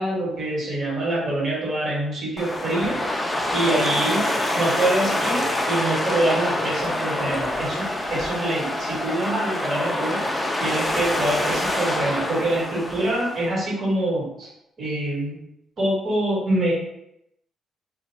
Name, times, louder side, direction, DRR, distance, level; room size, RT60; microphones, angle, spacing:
voice 1, 0.0-3.0 3.5-4.3 4.5-10.2 10.6-14.5 14.8-15.4 15.8-16.7, right 1 dB, 50° right, -4 dB, 1.2 m, -25 dB
sound 1, 2.4-13.5, left 1 dB, 10° left, 0.4 m, -26 dB
2.5 x 2.2 x 3.1 m, 0.80 s
cardioid pair, 90°, 0 cm